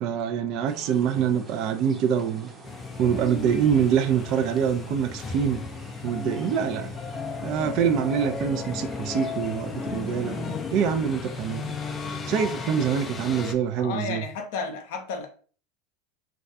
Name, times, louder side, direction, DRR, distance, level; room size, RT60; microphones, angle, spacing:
voice 1, 0.0-2.5 3.0-5.6 6.0-6.9 7.4-11.8 12.3-14.2, right 8 dB, 50° right, 0.3 m, -25 dB
sound 1, 0.7-13.4, right 3 dB, 30° right, 0.7 m, -46 dB
sound 2, 2.6-13.5, left 5 dB, 25° left, 0.3 m, -35 dB
voice 2, 13.8-15.3, left 5 dB, 70° left, 0.6 m, -32 dB
2.3 x 2.2 x 2.5 m
supercardioid pair, 115°, 0 cm